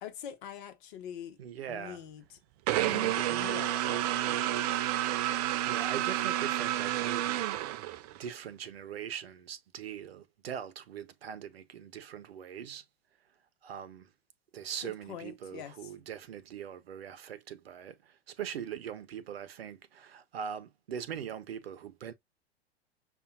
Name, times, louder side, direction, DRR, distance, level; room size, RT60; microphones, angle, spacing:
voice 1, 0.0-1.4 1.7-2.4 2.8-4.8 14.8-15.7, left 10 dB, 50° left, 1.0 m, -44 dB
voice 2, 1.4-2.0 5.6-7.8 8.1-12.8 13.6-14.1 14.5-22.1, right 8 dB, 65° right, 0.8 m, -41 dB
sound 1, 2.7-8.3, right 14 dB, 40° right, 0.4 m, -30 dB
6.7 x 2.6 x 2.4 m
figure-of-eight pair, 95°, 33 cm